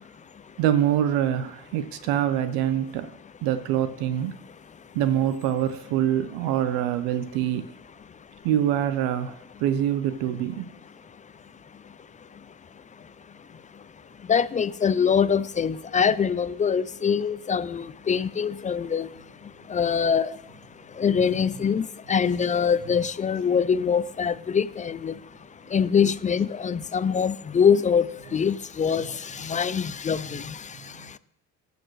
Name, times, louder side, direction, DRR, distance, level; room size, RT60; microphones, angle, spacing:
voice 1, 0.6-3.1 3.4-4.4 4.9-7.7 8.4-10.7, right 10 dB, 75° right, 0.8 m, -25 dB
voice 2, 14.3-19.1 19.7-20.3 21.0-25.1 25.7-28.1 28.3-29.1 29.4-30.5, left 7 dB, 20° left, 0.4 m, -23 dB
17.5 x 6.8 x 3.1 m
hypercardioid pair, 65°, 39 cm